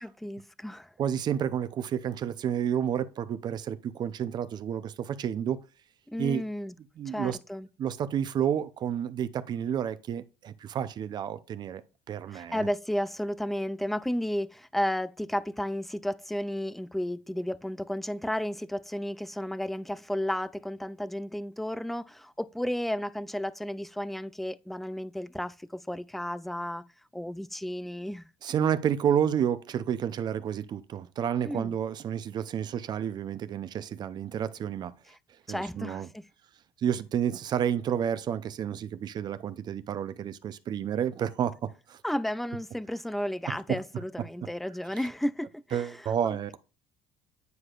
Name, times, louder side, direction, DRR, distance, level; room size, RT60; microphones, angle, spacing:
voice 1, 0.0-0.9 6.1-6.7 7.1-7.7 12.3-26.8 27.1-28.3 31.4-31.7 35.1-35.2 35.5-36.2 42.0-46.6, left 1 dB, ahead, 0.3 m, -33 dB
voice 2, 1.0-5.6 6.2-6.4 7.0-7.4 7.8-11.8 12.1-12.7 28.4-34.9 35.5-36.1 36.8-42.0 43.5-43.8 45.7-46.6, right 9 dB, 45° right, 0.6 m, -30 dB
9.4 x 4.8 x 2.4 m
cardioid pair, 115°, 10 cm